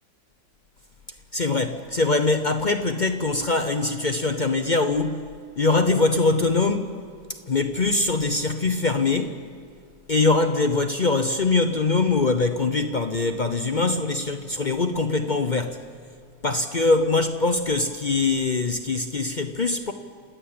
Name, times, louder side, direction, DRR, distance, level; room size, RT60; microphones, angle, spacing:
voice 1, 1.3-5.3 5.6-6.9 7.5-9.4 10.1-15.8 16.4-19.9, left 3 dB, 50° left, 7 dB, 0.5 m, -23 dB
29.0 x 10.5 x 8.7 m, 2.3 s
omnidirectional pair, 2.0 m